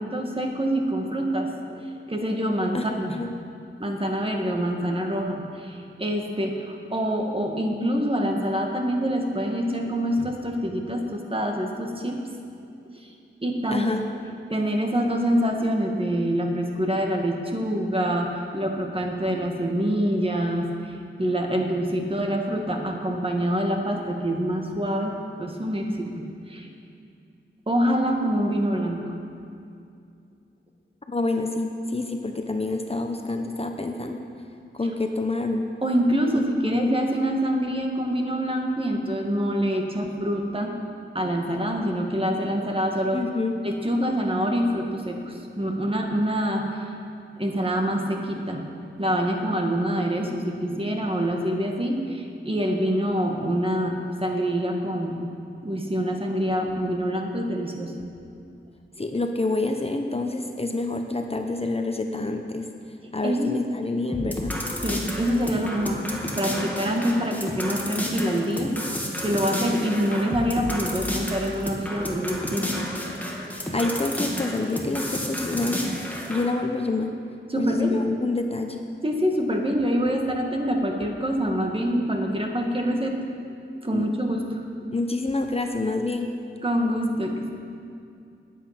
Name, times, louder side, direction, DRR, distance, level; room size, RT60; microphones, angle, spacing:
voice 1, 0.0-1.8 2.1-3.1 3.8-12.2 13.0-13.1 13.4-13.9 14.5-25.1 25.4-26.7 27.7-29.1 35.8-40.8 41.1-43.2 43.6-46.8 47.4-48.6 49.0-55.2 55.6-57.9 63.2-63.5 64.8-68.8 69.2-72.8 77.5-78.0 79.0-83.2 83.8-84.6 86.6-87.5, equal, 25° right, 1 dB, 1.7 m, -26 dB
voice 2, 2.7-3.4 13.7-14.0 31.1-34.2 34.7-35.7 36.3-37.0 43.1-43.6 59.0-62.7 63.1-64.6 73.7-75.9 76.3-77.1 77.6-78.8 83.9-84.1 84.9-86.4, left 2 dB, 30° left, 4 dB, 0.9 m, -27 dB
sound 1, 64.1-76.5, equal, 10° left, 1.9 m, -31 dB
20.5 x 8.4 x 5.9 m, 2.5 s
wide cardioid pair, 105°, 21 cm